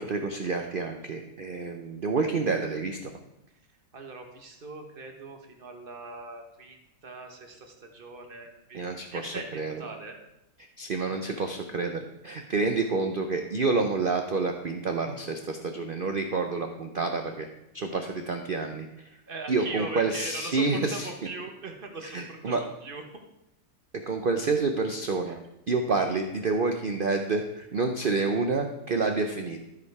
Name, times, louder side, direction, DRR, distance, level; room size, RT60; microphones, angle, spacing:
voice 1, 0.0-3.1 8.7-9.8 10.8-17.5 17.7-19.1 19.5-21.1 22.0-22.6 24.1-25.4 25.7-29.6, right 3 dB, 85° right, 5 dB, 0.4 m, -28 dB
voice 2, 3.9-10.2 11.2-11.3 19.3-23.0 25.3-25.4, right 3 dB, 35° right, 4 dB, 1.1 m, -40 dB
13.0 x 5.0 x 4.7 m, 0.87 s
omnidirectional pair, 1.9 m